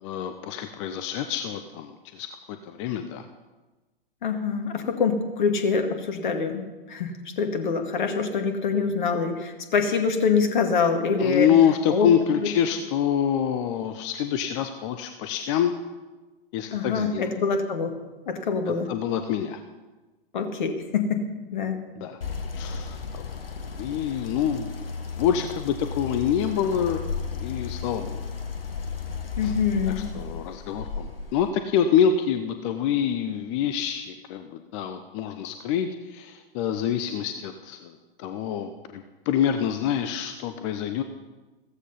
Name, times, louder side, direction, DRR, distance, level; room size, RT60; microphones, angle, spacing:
voice 1, 0.0-3.2 11.2-15.7 16.5-17.3 18.9-19.6 22.0-22.2 22.6-23.3 23.8-24.8 25.2-27.0 27.3-28.2 29.4-29.5 29.8-41.0, left 9 dB, 30° left, 8 dB, 0.9 m, -26 dB
voice 2, 4.2-11.5 11.9-12.1 16.7-17.9 18.3-18.9 20.3-21.2 21.5-21.8 29.4-30.0, left 5 dB, 55° left, 5 dB, 2.2 m, -25 dB
sound 1, 22.2-31.5, left 5 dB, 75° left, 1.3 m, -34 dB
15.5 x 14.5 x 5.6 m, 1.2 s
figure-of-eight pair, 110°, 29 cm